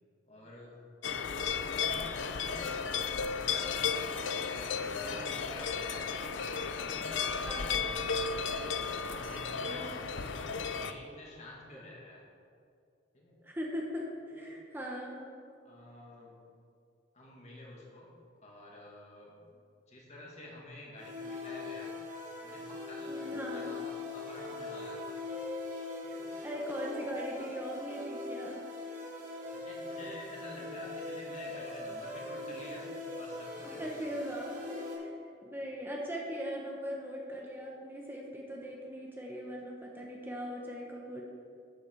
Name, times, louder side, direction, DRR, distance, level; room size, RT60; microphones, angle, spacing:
voice 1, 0.3-0.8 1.5-8.2 9.1-10.2 10.6-12.2 13.1-13.3 14.3-14.5 15.6-16.4 17.1-18.1 18.4-19.3 19.9-21.9 22.4-25.2 26.0-26.2 29.5-32.9 33.2-34.1, left 1 dB, 40° left, -3 dB, 2.3 m, -49 dB
sound 1, 1.0-10.9, left 5 dB, 90° left, 0.6 m, -34 dB
voice 2, 13.4-15.3 23.1-23.8 26.0-28.6 32.5-32.6 33.8-35.1 35.4-41.2, equal, 10° right, -2 dB, 1.1 m, -40 dB
sound 2, 21.0-34.9, left 2 dB, 45° right, 2.8 m, -41 dB
12.0 x 8.1 x 4.7 m, 2.4 s
head